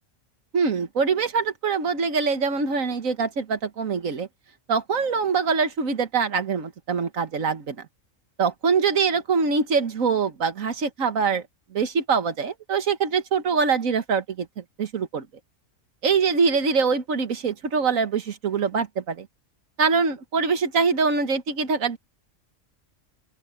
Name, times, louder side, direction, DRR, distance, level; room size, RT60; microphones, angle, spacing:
voice 1, 0.5-4.3 4.7-7.8 8.4-11.4 11.7-15.3 16.0-19.3 19.8-22.0, right 5 dB, 85° right, 1.8 m, -24 dB
open air
omnidirectional pair, 1.4 m